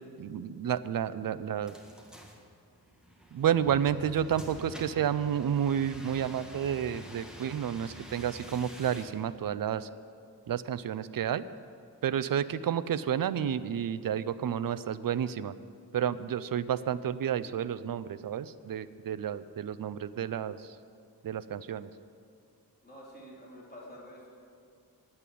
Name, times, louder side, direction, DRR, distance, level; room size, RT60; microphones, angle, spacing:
voice 1, 0.2-1.7 3.3-9.9 10.5-11.4 12.0-15.5 15.9-20.8 21.2-21.9, right 9 dB, 60° right, 14 dB, 0.5 m, -31 dB
sound 1, 1.7-9.1, equal, ahead, 1.6 m, -47 dB
voice 2, 22.8-24.3, equal, 25° left, -6 dB, 3.6 m, -49 dB
8.8 x 8.4 x 9.1 m, 2.3 s
wide cardioid pair, 90°, 38 cm